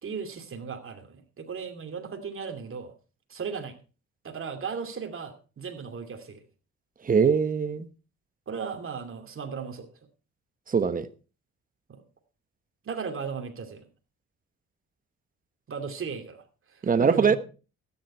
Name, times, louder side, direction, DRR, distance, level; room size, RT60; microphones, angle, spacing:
voice 1, 0.0-2.9 3.3-3.7 4.2-6.4 8.5-9.9 11.9-12.0 12.8-13.8 15.7-17.4, right 6 dB, 45° right, 2.7 m, -36 dB
voice 2, 7.0-7.9 10.7-11.1 16.8-17.4, right 6 dB, 30° right, 1.0 m, -22 dB
13.5 x 10.0 x 4.4 m
cardioid pair, 90°, 30 cm